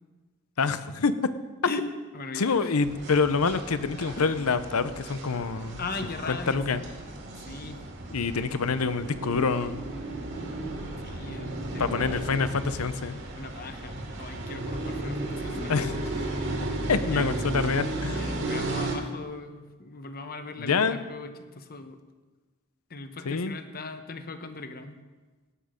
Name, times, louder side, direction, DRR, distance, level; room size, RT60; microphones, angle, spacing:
voice 1, 0.6-1.1 2.3-5.8 6.3-6.8 8.1-9.8 11.8-13.2 15.6-15.9 16.9-18.2 20.6-21.0 23.2-23.6, left 4 dB, 85° left, 13 dB, 0.7 m, -26 dB
voice 2, 2.1-2.7 4.2-4.3 5.3-6.9 7.5-7.8 11.0-12.2 13.3-15.9 17.1-17.4 18.1-21.3 21.5-22.0 22.9-25.0, left 3 dB, 45° left, 8 dB, 1.0 m, -39 dB
sound 1, 2.8-19.0, right 2 dB, 55° right, 2.3 m, -34 dB
17.0 x 9.7 x 5.1 m, 1.3 s
head